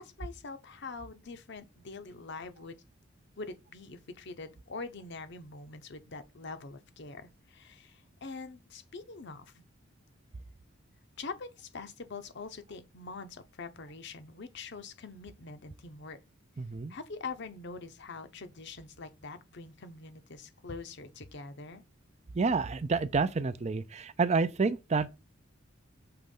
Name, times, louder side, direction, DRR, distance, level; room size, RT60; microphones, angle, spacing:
voice 1, 0.0-2.8 3.4-9.6 11.2-16.2 16.9-21.8, left 4 dB, 55° left, 0.8 m, -44 dB
voice 2, 16.6-16.9 22.3-25.1, right 4 dB, 35° right, 0.4 m, -29 dB
6.8 x 3.1 x 5.4 m
head